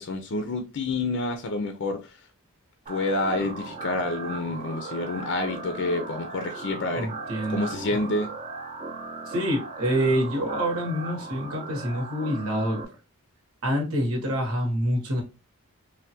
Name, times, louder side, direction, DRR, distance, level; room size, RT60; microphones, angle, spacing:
voice 1, 0.0-2.2 2.9-7.1 7.5-8.3, left 2 dB, 55° left, 0.4 m, -28 dB
sound 1, 2.9-12.9, right 3 dB, 30° right, 0.5 m, -37 dB
voice 2, 6.9-7.9 9.3-12.8 13.6-15.2, equal, 75° right, 1.0 m, -27 dB
3.3 x 2.2 x 2.7 m
head